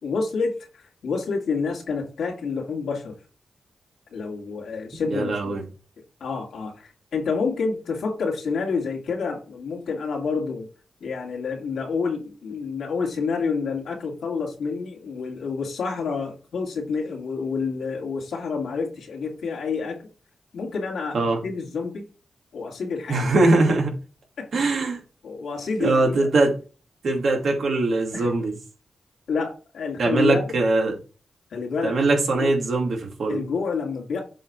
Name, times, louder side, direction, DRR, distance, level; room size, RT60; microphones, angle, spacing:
voice 1, 0.0-3.1 4.1-5.6 6.2-10.7 11.0-20.0 20.5-22.0 22.5-23.5 24.4-24.5 25.2-26.3 28.1-28.3 29.3-30.4 31.5-32.0 32.4-32.5 33.3-34.2, left 4 dB, 85° left, -1 dB, 2.6 m, -28 dB
voice 2, 5.0-5.6 21.1-21.4 23.1-23.9 24.5-25.0 25.8-26.5 27.0-28.5 30.0-31.0 31.8-33.4, right 2 dB, 75° right, 0 dB, 2.6 m, -21 dB
7.6 x 3.3 x 5.4 m, 0.34 s
cardioid pair, 55°, 0 cm